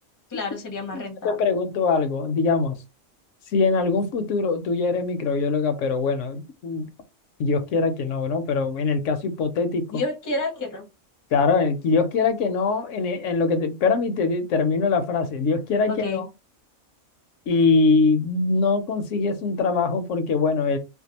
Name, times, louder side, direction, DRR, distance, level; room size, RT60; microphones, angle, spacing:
voice 1, 0.3-1.5 9.9-10.9 15.9-16.2, left 2 dB, 25° left, 0.5 m, -30 dB
voice 2, 0.9-2.7 3.5-6.9 7.4-9.8 11.3-16.2 17.5-20.8, left 4 dB, 75° left, 0.9 m, -23 dB
2.6 x 2.3 x 2.8 m
omnidirectional pair, 1.3 m